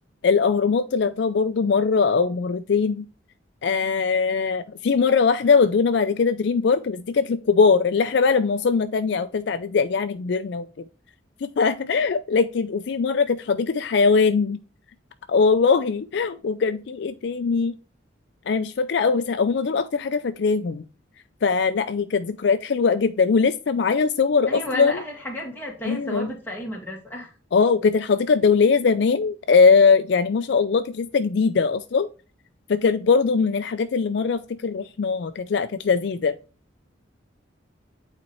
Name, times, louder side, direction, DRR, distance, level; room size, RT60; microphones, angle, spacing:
voice 1, 0.2-3.0 3.6-10.7 11.4-14.6 15.3-17.7 18.5-20.8 21.4-25.0 25.9-26.3 27.5-32.1 32.7-36.4, left 5 dB, 60° left, 0.4 m, -21 dB
voice 2, 24.5-27.3, left 1 dB, 10° left, 1.9 m, -32 dB
8.9 x 4.2 x 3.0 m
head